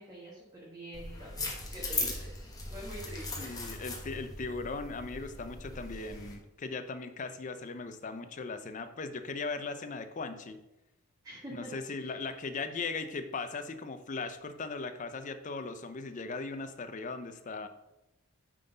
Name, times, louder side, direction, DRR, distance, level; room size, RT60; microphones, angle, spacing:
voice 1, 0.0-2.3 2.7-3.5 11.2-12.4, right 1 dB, 15° right, -6 dB, 1.3 m, -46 dB
sound 1, 0.9-6.3, left 2 dB, 15° left, 1.0 m, -39 dB
voice 2, 3.3-10.6 11.5-17.7, left 4 dB, 35° left, 9 dB, 0.5 m, -38 dB
9.2 x 3.8 x 3.9 m, 0.94 s
head